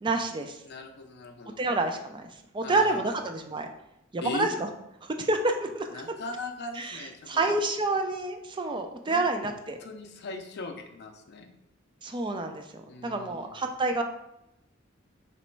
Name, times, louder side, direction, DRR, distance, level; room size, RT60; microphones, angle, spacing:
voice 1, 0.0-0.6 1.6-2.3 2.5-3.7 4.1-4.7 5.0-6.0 6.8-9.8 12.0-14.0, right 2 dB, 25° right, 5 dB, 0.4 m, -28 dB
voice 2, 0.7-1.6 2.6-3.2 4.2-4.5 5.9-7.5 9.1-9.2 9.8-11.5 12.9-13.6, left 3 dB, 55° left, 4 dB, 0.5 m, -39 dB
3.1 x 3.0 x 4.5 m, 0.84 s
head